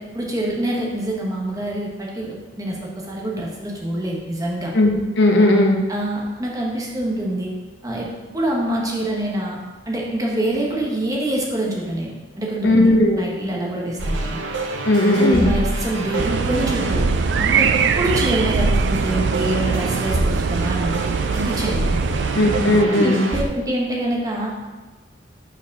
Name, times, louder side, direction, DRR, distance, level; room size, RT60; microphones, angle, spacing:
voice 1, 0.0-4.7 5.9-7.5 7.8-9.6 9.9-12.9 13.1-14.4 15.2-17.1 17.4-17.7 18.0-21.9 22.8-24.6, right 1 dB, 20° right, -2 dB, 1.1 m, -25 dB
voice 2, 4.7-5.8 12.6-13.2 14.8-15.4 22.3-23.2, left 1 dB, 65° left, 0 dB, 1.1 m, -16 dB
sound 1, 14.0-23.4, right 2 dB, 80° right, 0.8 m, -26 dB
sound 2, 16.2-22.8, right 6 dB, 60° right, 0.3 m, -23 dB
5.0 x 4.7 x 5.9 m, 1.3 s
head